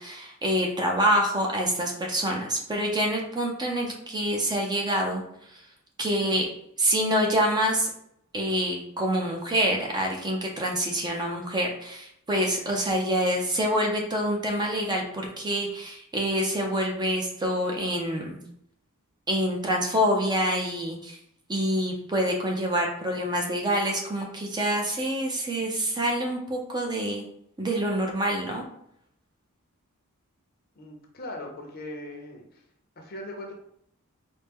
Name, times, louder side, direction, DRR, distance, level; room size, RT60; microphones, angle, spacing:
voice 1, 0.0-5.2 5.5-5.6 6.0-6.5 6.8-7.9 8.3-18.4 19.3-21.2 21.5-27.2 27.6-28.6, equal, 20° right, 0 dB, 0.6 m, -26 dB
voice 2, 30.8-32.6 33.0-33.5, left 1 dB, 45° left, 2 dB, 0.7 m, -39 dB
4.3 x 2.1 x 3.5 m, 0.72 s
head